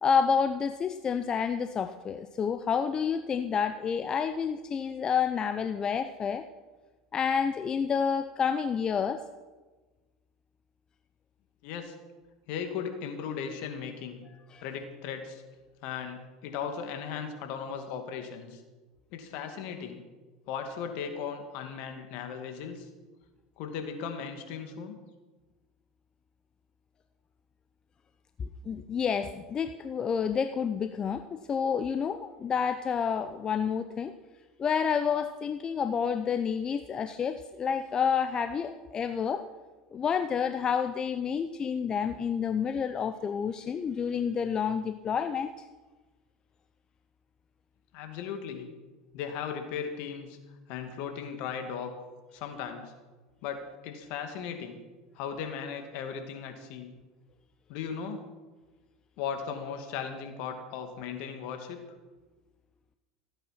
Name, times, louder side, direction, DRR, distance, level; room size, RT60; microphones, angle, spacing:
voice 1, 0.0-6.5 7.1-9.2 14.5-14.6 28.4-34.1 34.6-39.5 39.9-45.5, left 6 dB, 30° left, 9 dB, 0.7 m, -29 dB
voice 2, 11.6-11.9 12.5-14.2 14.6-15.4 15.8-18.6 19.1-20.0 20.5-22.9 23.6-24.9 47.9-48.7 49.1-50.4 50.7-51.9 52.3-52.9 53.4-54.8 55.2-56.9 57.7-58.2 59.2-61.8, left 7 dB, 65° left, 6 dB, 2.3 m, -37 dB
16.5 x 8.8 x 5.9 m, 1.2 s
hypercardioid pair, 90°, 2 cm